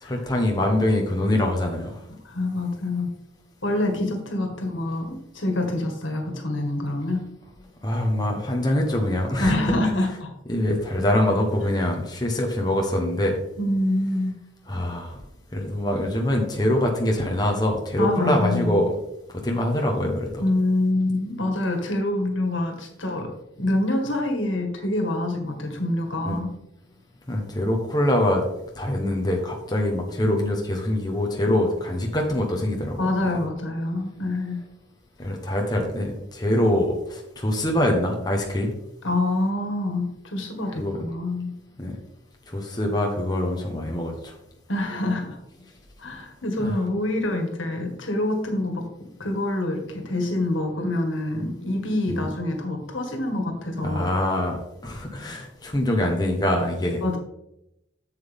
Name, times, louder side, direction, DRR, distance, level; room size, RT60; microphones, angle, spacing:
voice 1, 0.0-1.9 7.8-9.6 10.5-13.4 14.7-15.1 15.5-18.9 19.4-20.4 26.2-26.4 27.3-28.4 28.8-33.0 35.2-38.7 40.8-41.0 41.8-42.0 42.5-44.3 46.6-46.7 52.1-52.3 53.8-54.6 54.8-57.0, left 1 dB, 20° left, 1 dB, 1.1 m, -24 dB
voice 2, 2.2-3.1 3.6-7.2 9.4-10.3 13.6-14.3 18.0-18.9 20.4-23.3 23.6-26.5 33.0-34.6 39.0-41.5 44.7-45.4 46.0-54.1 57.0-57.2, left 1 dB, 80° left, 3 dB, 1.8 m, -26 dB
7.6 x 7.4 x 3.6 m, 0.83 s
head